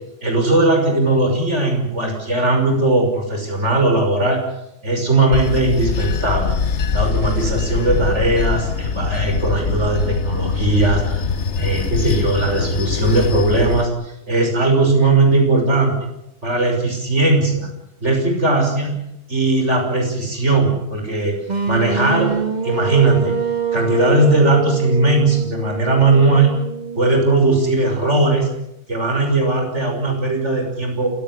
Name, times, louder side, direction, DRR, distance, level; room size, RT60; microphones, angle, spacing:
voice 1, 0.2-4.4 4.8-6.5 6.9-11.3 11.6-15.9 16.4-17.7 18.0-18.9 19.3-21.4 21.7-22.3 22.6-23.3 23.7-26.5 27.0-28.5 28.9-31.1, right 2 dB, 70° right, 3 dB, 6.6 m, -18 dB
Bell / Train, 5.3-13.8, left 5 dB, 65° left, 1.4 m, -22 dB
sound 1, 21.5-27.4, right 6 dB, 35° right, 2.2 m, -25 dB
27.5 x 15.5 x 9.9 m, 0.86 s
omnidirectional pair, 1.3 m